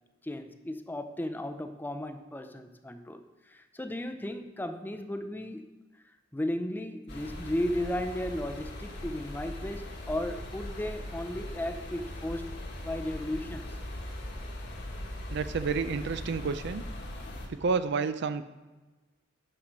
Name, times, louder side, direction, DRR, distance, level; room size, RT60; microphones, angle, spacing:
voice 1, 0.2-5.7 6.3-12.5 12.8-13.8, left 1 dB, 10° left, 8 dB, 0.6 m, -35 dB
sound 1, 7.1-17.5, left 1 dB, 60° left, 1.5 m, -40 dB
voice 2, 15.3-16.8 17.5-18.4, right 5 dB, 60° right, 11 dB, 0.4 m, -30 dB
8.8 x 5.9 x 5.1 m, 1.2 s
head